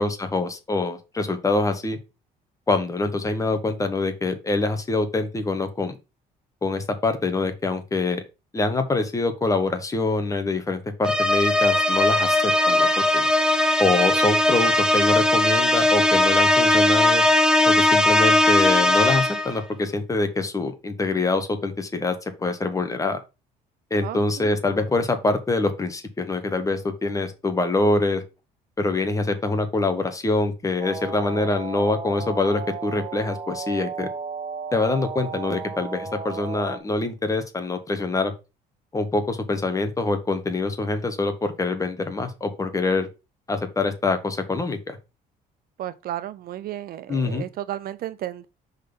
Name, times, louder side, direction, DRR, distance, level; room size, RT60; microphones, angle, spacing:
voice 1, 0.0-2.0 2.7-6.0 6.6-8.2 8.5-13.3 13.8-17.2 17.6-23.2 23.9-28.2 28.8-34.1 34.7-38.3 38.9-43.1 43.5-45.0 47.1-47.4, left 3 dB, 20° left, 1.3 m, -25 dB
sound 1, 11.0-19.6, left 1 dB, 5° right, 0.7 m, -19 dB
voice 2, 24.0-24.5 45.8-48.5, right 12 dB, 60° right, 0.6 m, -33 dB
sound 2, 30.8-36.8, right 5 dB, 35° right, 0.9 m, -34 dB
5.2 x 4.1 x 5.3 m
cardioid pair, 110°, 17 cm